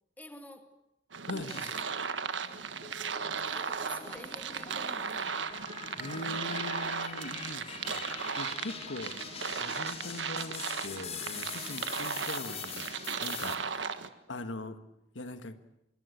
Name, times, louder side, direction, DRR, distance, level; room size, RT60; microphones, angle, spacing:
voice 1, 0.2-0.7 1.3-1.9 2.3-2.7 3.4-5.5 6.2-6.4 6.9-7.0 7.4-8.2 11.6-11.9 13.7-14.1, left 1 dB, 10° left, 2.3 m, -50 dB
sound 1, 1.1-14.1, right 6 dB, 90° right, 1.5 m, -36 dB
voice 2, 1.3-1.6 6.0-7.7 7.9-8.0 8.4-12.8 13.2-13.9 14.3-14.8 15.1-15.6, left 2 dB, 90° left, 1.7 m, -41 dB
sound 2, 1.5-2.3 2.8-13.5, left 6 dB, 35° left, 2.7 m, -43 dB
25.5 x 23.5 x 8.1 m
head